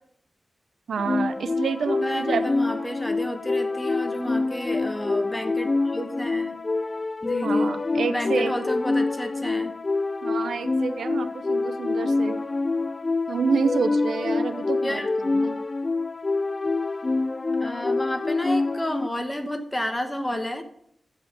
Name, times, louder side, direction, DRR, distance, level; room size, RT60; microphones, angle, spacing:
voice 1, 0.9-2.4 7.4-8.5 10.2-12.4 13.3-15.0 15.3-15.6, right 5 dB, 90° right, 11 dB, 0.8 m, -28 dB
sound 1, 1.0-19.1, left 3 dB, 30° left, 0.4 m, -26 dB
voice 2, 2.0-6.6 7.2-7.7 8.1-9.7 14.8-15.1 17.6-20.6, left 1 dB, 10° left, 6 dB, 1.1 m, -31 dB
14.5 x 5.1 x 6.1 m, 0.69 s
wide cardioid pair, 120°, 0 cm